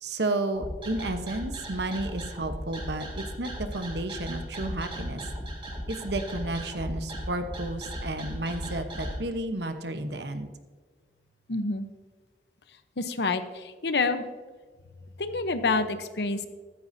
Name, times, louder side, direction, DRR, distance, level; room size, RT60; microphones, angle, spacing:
voice 1, 0.0-5.2 5.9-10.5, right 2 dB, 75° right, 8 dB, 1.1 m, -32 dB
sound 1, 0.5-9.1, equal, 30° right, 2.9 m, -37 dB
voice 2, 11.5-11.9 13.0-14.2 15.2-16.5, left 3 dB, 75° left, 10 dB, 0.9 m, -28 dB
14.5 x 13.5 x 2.8 m, 1.5 s
head